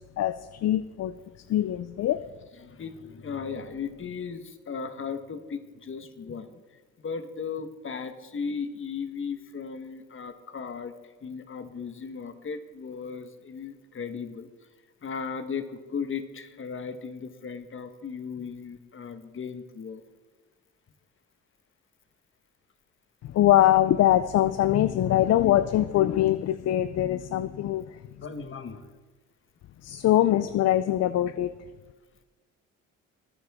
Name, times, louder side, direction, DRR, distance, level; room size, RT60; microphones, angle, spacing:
voice 1, 0.2-1.1 1.5-2.2 23.2-28.0 29.8-31.5, left 13 dB, 60° left, 14 dB, 0.5 m, -23 dB
voice 2, 2.6-6.5 7.0-10.9 11.2-14.5 15.0-20.0 28.2-28.9, left 6 dB, 40° left, 9 dB, 1.3 m, -36 dB
21.5 x 9.0 x 3.6 m, 1.3 s
cardioid pair, 90°, 30 cm